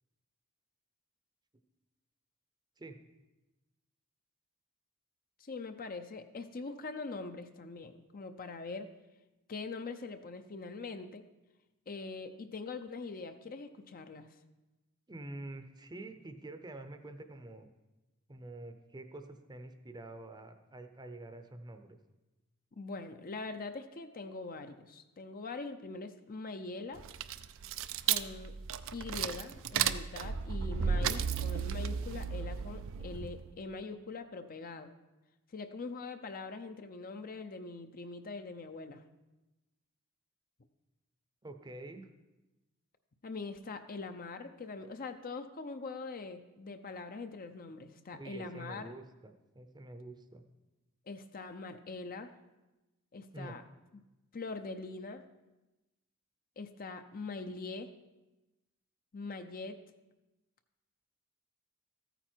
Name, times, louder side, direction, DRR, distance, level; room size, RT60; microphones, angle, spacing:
voice 1, 5.4-8.9 9.5-11.2 11.9-14.3 22.8-27.0 28.0-28.5 28.9-34.9 35.5-39.0 43.2-48.9 51.1-52.3 53.1-53.6 54.3-55.2 56.6-57.9 59.1-59.8, left 3 dB, 40° left, 8 dB, 0.6 m, -43 dB
voice 2, 15.1-17.7 18.3-22.0 41.4-42.1 48.1-50.4 53.3-53.6, right 2 dB, 20° right, 8 dB, 0.7 m, -47 dB
sound 1, 27.0-33.5, right 7 dB, 65° right, 0.4 m, -34 dB
14.0 x 9.2 x 4.5 m, 1.0 s
head